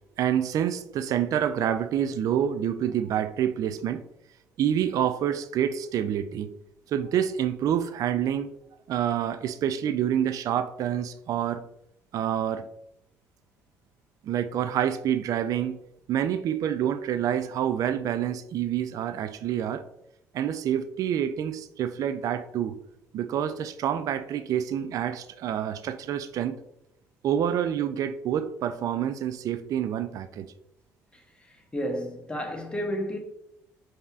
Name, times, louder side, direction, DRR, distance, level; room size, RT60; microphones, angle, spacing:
voice 1, 0.2-4.0 4.6-6.5 6.9-8.5 8.9-11.6 12.1-12.7 14.2-15.8 16.1-19.9 20.3-22.8 23.1-26.6 27.2-30.5, right 9 dB, 60° right, 0.3 m, -27 dB
voice 2, 31.1-33.2, equal, 15° left, 0.9 m, -32 dB
5.3 x 2.8 x 2.3 m
supercardioid pair, 75°, 7 cm